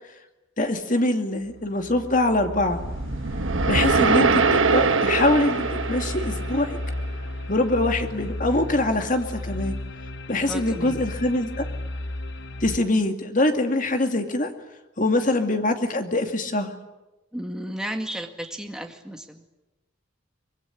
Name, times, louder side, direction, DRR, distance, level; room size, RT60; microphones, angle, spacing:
voice 1, 0.6-2.8 3.7-6.8 7.5-9.7 10.3-11.6 12.6-14.5 15.0-16.7, left 2 dB, 40° left, 6 dB, 2.4 m, -23 dB
sound 1, 1.4-12.8, left 1 dB, 60° left, 1.1 m, -34 dB
sound 2, 2.7-7.0, right 4 dB, 80° right, 1.2 m, -23 dB
voice 2, 10.5-11.0 17.3-19.4, right 1 dB, 5° right, 4 dB, 2.0 m, -33 dB
24.5 x 22.0 x 9.9 m, 1.0 s
head